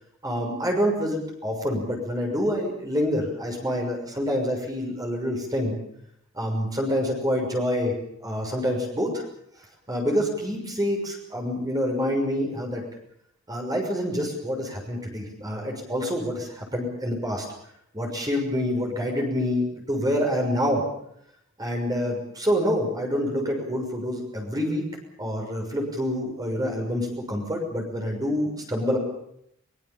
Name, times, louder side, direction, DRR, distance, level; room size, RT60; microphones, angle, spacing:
voice 1, 0.2-5.8 6.3-7.9 8.2-9.2 9.9-12.8 13.5-17.5 17.9-20.8 21.6-24.8 25.2-29.0, equal, 20° right, 1 dB, 6.3 m, -27 dB
23.5 x 22.5 x 7.2 m, 0.73 s
head